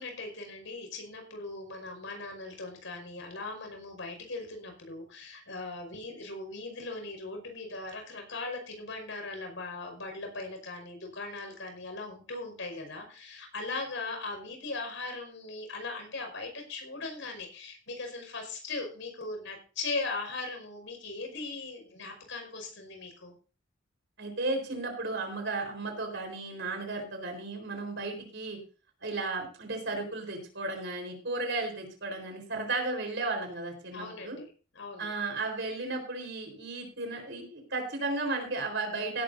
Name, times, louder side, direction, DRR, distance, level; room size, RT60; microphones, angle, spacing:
voice 1, 0.0-23.3 33.9-35.1, left 3 dB, 75° left, 3 dB, 5.4 m, -39 dB
voice 2, 24.2-28.6 29.0-34.4 35.0-39.2, right 3 dB, 65° right, 4 dB, 4.2 m, -34 dB
17.0 x 12.0 x 2.7 m, 0.36 s
head